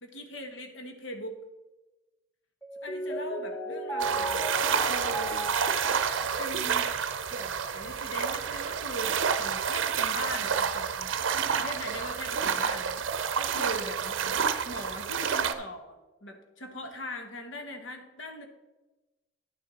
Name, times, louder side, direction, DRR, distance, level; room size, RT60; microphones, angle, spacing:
voice 1, 0.0-1.3 2.8-4.4 4.9-5.5 6.4-6.9 7.3-11.1 11.6-13.0 13.4-14.2 14.6-18.5, left 1 dB, 80° left, 5 dB, 1.2 m, -40 dB
Mallet percussion, 2.6-7.6, right 1 dB, 10° left, 0.7 m, -36 dB
sound 1, 4.0-15.5, right 7 dB, 80° right, 0.6 m, -29 dB
10.0 x 6.8 x 4.1 m, 1.1 s
head